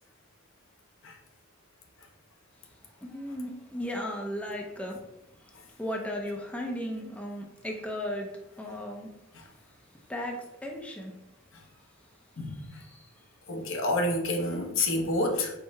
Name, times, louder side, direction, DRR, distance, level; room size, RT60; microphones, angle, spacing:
voice 1, 3.0-5.1 5.4-8.3 8.5-9.1 9.4-9.8 10.1-11.1 11.7-11.8 12.4-13.1, equal, 5° left, 1 dB, 0.4 m, -36 dB
voice 2, 13.5-15.5, left 2 dB, 70° left, 2 dB, 0.8 m, -28 dB
4.6 x 2.1 x 4.5 m, 0.87 s
head